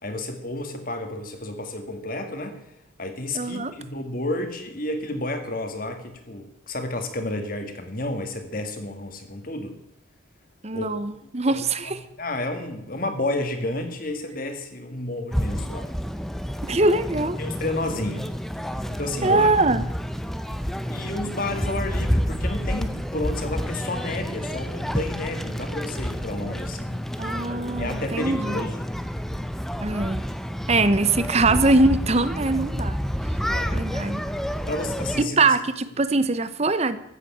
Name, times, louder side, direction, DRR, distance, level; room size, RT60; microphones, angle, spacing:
voice 1, 0.0-2.6 3.0-9.8 10.7-15.9 16.7-16.8 17.4-18.3 18.9-19.5 20.9-27.0 27.8-28.9 33.5-34.3 34.7-35.6, left 2 dB, 45° left, 6 dB, 2.0 m, -31 dB
voice 2, 3.3-3.7 10.6-12.0 16.6-17.4 19.2-19.8 27.2-28.6 29.8-30.2 30.7-33.0 33.7-34.2 35.2-37.0, right 3 dB, 30° right, 13 dB, 0.8 m, -22 dB
sound 1, 15.3-35.2, equal, ahead, 0.6 m, -29 dB
14.0 x 8.3 x 8.5 m, 0.83 s
head